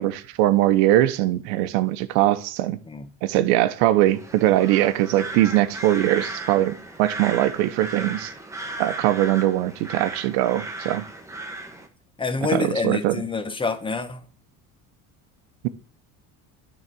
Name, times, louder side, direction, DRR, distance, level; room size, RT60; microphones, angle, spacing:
voice 1, 0.0-2.8 3.2-8.3 8.8-11.0 12.5-13.2, right 14 dB, 80° right, 0.8 m, -21 dB
sound 1, 4.1-11.9, right 2 dB, 10° right, 1.1 m, -36 dB
voice 2, 12.2-14.2, left 4 dB, 15° left, 0.9 m, -27 dB
9.6 x 4.0 x 6.0 m
supercardioid pair, 110°, 36 cm